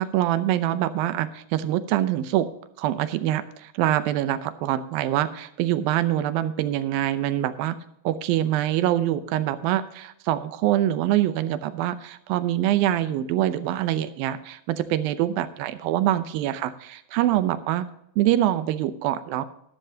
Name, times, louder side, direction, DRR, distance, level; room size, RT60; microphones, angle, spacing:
voice 1, 0.0-2.5 2.8-7.8 8.1-17.9 18.2-19.5, right 13 dB, 85° right, 12 dB, 2.6 m, -24 dB
13.0 x 12.0 x 2.8 m, 0.76 s
omnidirectional pair, 4.1 m